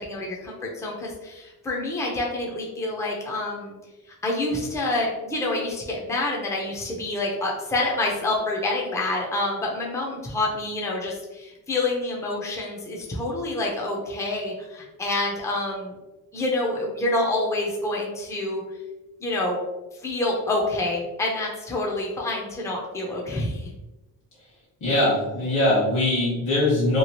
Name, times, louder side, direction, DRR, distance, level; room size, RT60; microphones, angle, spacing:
voice 1, 0.0-3.7 4.2-15.9 16.3-18.6 19.2-19.6 20.0-23.7, left 2 dB, 10° left, -2 dB, 0.5 m, -27 dB
voice 2, 24.8-27.0, left 1 dB, 55° left, -7 dB, 1.2 m, -21 dB
3.0 x 2.4 x 2.7 m, 1.1 s
cardioid pair, 130°, 37 cm